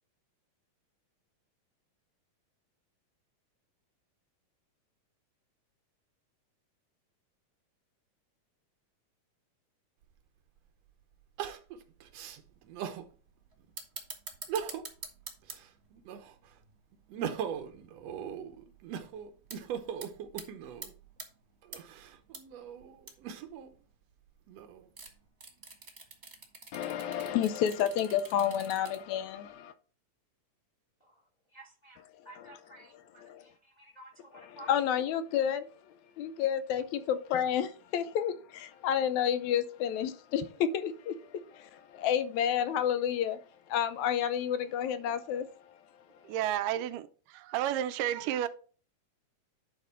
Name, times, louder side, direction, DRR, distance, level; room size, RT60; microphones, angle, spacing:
Crying sobbing, 10.0-10.1 11.4-13.1 13.6-13.7 14.3-15.0 15.4-16.5 16.9-20.9 21.6-23.7 24.3-25.1, right 8 dB, 70° right, 1.7 m, -39 dB
sound 1, 12.2-12.3 12.7-13.1 13.5-18.0 18.4-18.5 18.8-19.1 19.5-19.6 19.9-20.4 20.8-21.3 21.7-22.4 22.7-22.8 23.0-23.3 24.9-29.1 29.4-29.5, right 3 dB, 30° right, 1.3 m, -46 dB
voice 1, 26.7-29.7 33.2-33.4 34.7-35.7 36.2-43.4 43.7-45.5, left 9 dB, 75° left, 1.9 m, -30 dB
voice 2, 31.5-34.8, right 1 dB, 20° left, 1.3 m, -53 dB
voice 3, 46.2-48.5, right 11 dB, 85° right, 2.3 m, -32 dB
11.0 x 4.5 x 4.4 m
omnidirectional pair, 3.8 m